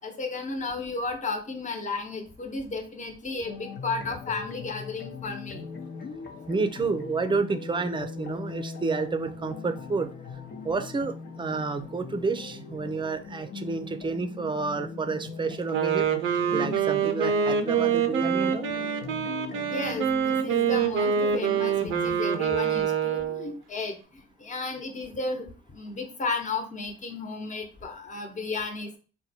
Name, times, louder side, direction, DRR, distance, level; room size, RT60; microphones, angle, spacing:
voice 1, 0.0-5.6 19.7-23.9 24.4-25.5 25.7-28.9, left 3 dB, 40° left, 4 dB, 1.0 m, -33 dB
sound 1, 3.4-22.2, left 5 dB, 60° left, 0.8 m, -40 dB
voice 2, 6.5-10.1 10.6-16.1 16.5-18.7, right 4 dB, 25° right, 9 dB, 0.5 m, -30 dB
Wind instrument woodwind instrument, 15.6-23.5, right 7 dB, 85° right, 0.6 m, -26 dB
4.0 x 2.2 x 4.3 m, 0.37 s
cardioid pair, 90°, 20 cm